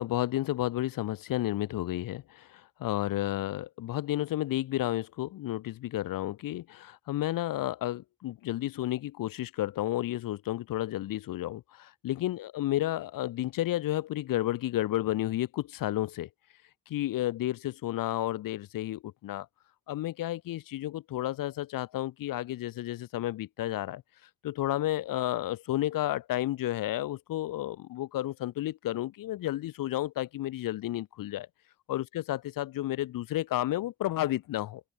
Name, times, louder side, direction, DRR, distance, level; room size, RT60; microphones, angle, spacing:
voice 1, 0.0-16.3 16.9-19.5 19.9-24.0 24.4-31.5 31.9-34.8, left 14 dB, 85° left, 0.7 m, -32 dB
cardioid pair, 80°, 33 cm